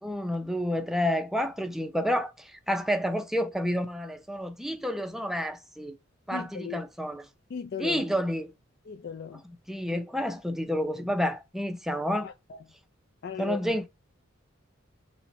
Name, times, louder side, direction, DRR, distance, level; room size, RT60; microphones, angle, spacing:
voice 1, 0.0-6.0 6.3-7.2 7.8-8.5 9.7-12.3 13.4-13.9, equal, ahead, 0.5 m, -29 dB
voice 2, 6.3-6.8 7.5-8.1 8.8-9.4 12.2-12.6 13.2-13.8, left 6 dB, 55° left, 0.4 m, -37 dB
4.2 x 2.2 x 4.1 m
head